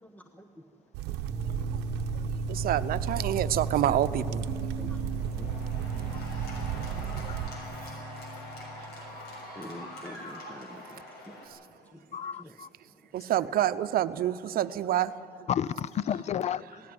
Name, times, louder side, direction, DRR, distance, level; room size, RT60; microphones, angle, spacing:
voice 1, 0.0-2.7 4.7-13.3, equal, 10° left, 1.1 m, -52 dB
sound 1, 0.9-7.5, right 12 dB, 90° right, 0.8 m, -34 dB
sound 2, 1.3-10.0, right 1 dB, 35° right, 1.3 m, -37 dB
Cheering / Applause, 1.8-11.5, left 1 dB, 70° left, 6.5 m, -45 dB
voice 2, 2.3-4.5 7.4-7.5 8.8-8.9 9.4-9.5 10.7-10.8 13.1-15.3, right 12 dB, 60° right, 0.8 m, -28 dB
voice 3, 9.8-10.1 12.1-12.7 15.5-16.8, left 9 dB, 40° left, 0.5 m, -32 dB
18.0 x 16.0 x 9.7 m
cardioid pair, 110°, 17 cm